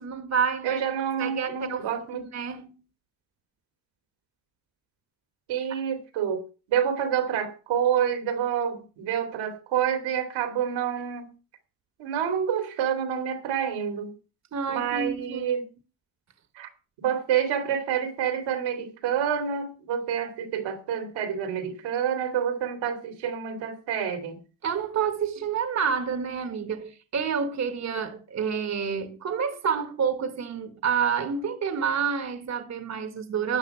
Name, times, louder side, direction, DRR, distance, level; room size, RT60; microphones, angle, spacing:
voice 1, 0.0-0.8 1.2-1.9 2.1-2.7 5.7-5.8 14.5-15.5 24.6-33.6, right 6 dB, 35° right, 1.4 m, -28 dB
voice 2, 0.6-2.2 5.5-11.3 12.0-14.1 14.7-15.7 16.6-16.7 17.0-24.4, right 8 dB, 80° right, 2.9 m, -28 dB
13.0 x 9.1 x 4.9 m
cardioid pair, 120°, 46 cm